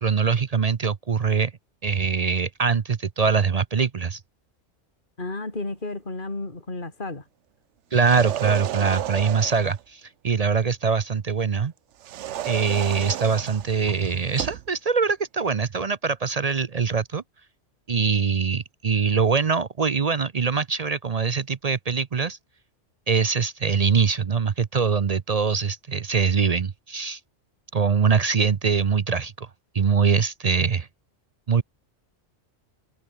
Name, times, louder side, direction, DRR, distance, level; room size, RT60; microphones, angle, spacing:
voice 1, 0.0-1.5 1.8-4.2 7.9-11.7 12.4-17.2 17.9-22.4 23.1-27.2 27.7-29.5 29.7-30.9 31.5-31.6, right 5 dB, 40° right, 0.6 m, -23 dB
voice 2, 5.2-7.3, left 2 dB, 45° left, 3.3 m, -32 dB
sound 1, 7.9-9.8 12.0-14.7, right 11 dB, 80° right, 1.0 m, -32 dB
omnidirectional pair, 1.2 m